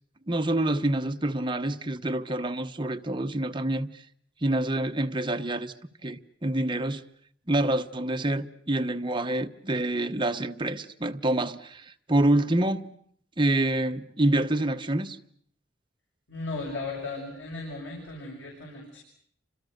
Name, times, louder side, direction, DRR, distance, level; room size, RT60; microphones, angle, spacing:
voice 1, 0.3-4.0 4.4-5.7 6.0-7.0 7.5-12.9 13.4-15.2, right 1 dB, 25° right, 1.0 m, -27 dB
voice 2, 16.3-19.0, left 3 dB, 80° left, 7.2 m, -36 dB
29.5 x 25.5 x 6.6 m
head